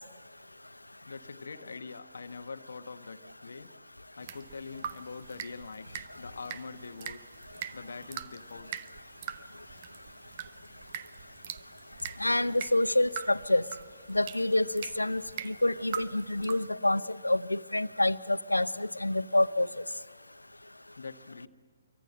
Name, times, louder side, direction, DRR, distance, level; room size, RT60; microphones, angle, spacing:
voice 1, 1.1-3.7 4.2-7.2 7.7-8.9 21.0-21.5, left 4 dB, 65° left, 8 dB, 1.1 m, -44 dB
sound 1, 4.2-16.7, right 9 dB, 40° right, 0.9 m, -43 dB
voice 2, 12.2-13.6 14.1-19.7, left 1 dB, 85° left, 15 dB, 0.7 m, -27 dB
27.0 x 24.0 x 7.7 m, 1.5 s
figure-of-eight pair, 130°, 0 cm